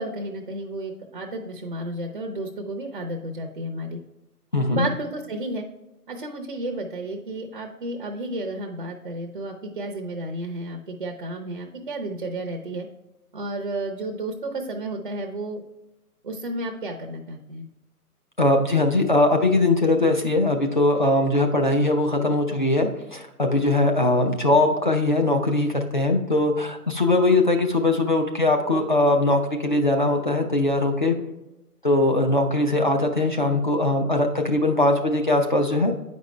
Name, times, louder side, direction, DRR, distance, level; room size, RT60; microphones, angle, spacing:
voice 1, 0.0-4.0 4.7-5.7 6.1-12.9 13.3-15.6 16.2-17.7, right 1 dB, 35° right, 3 dB, 0.5 m, -32 dB
voice 2, 4.5-4.9 18.4-31.1 31.8-35.9, left 2 dB, 35° left, 2 dB, 0.4 m, -21 dB
8.6 x 5.2 x 3.2 m, 0.97 s
figure-of-eight pair, 140°, 47 cm